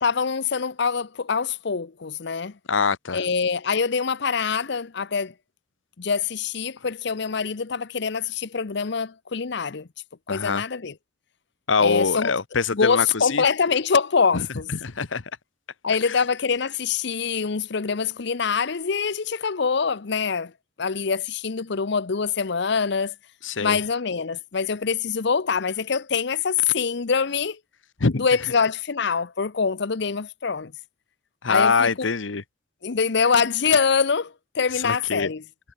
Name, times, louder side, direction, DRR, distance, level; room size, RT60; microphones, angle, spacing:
voice 1, 0.0-2.5 3.1-5.3 6.0-9.9 10.3-10.9 11.8-12.3 12.7-14.7 15.8-20.5 20.8-23.1 23.6-27.6 28.2-30.7 31.5-31.9 32.8-35.4, left 5 dB, 65° left, 0.7 m, -24 dB
voice 2, 2.7-3.2 10.3-10.6 11.7-13.4 14.3-14.5 14.8-15.2 16.1-16.2 23.4-23.8 28.0-28.3 31.4-32.4 34.8-35.3, left 4 dB, 90° left, 1.1 m, -23 dB
head